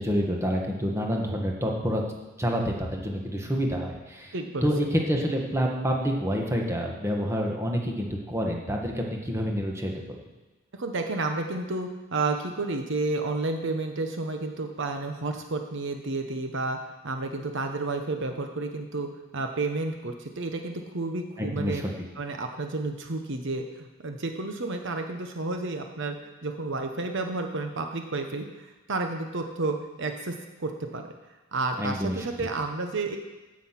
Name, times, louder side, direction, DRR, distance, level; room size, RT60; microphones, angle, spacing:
voice 1, 0.0-2.0 2.4-4.3 4.6-10.2 21.4-21.9 31.8-32.3, equal, 15° right, 0 dB, 1.6 m, -28 dB
voice 2, 4.3-4.7 10.7-21.8 22.2-31.1 31.5-33.2, right 3 dB, 60° right, 5 dB, 1.0 m, -31 dB
15.5 x 6.4 x 5.9 m, 1.2 s
head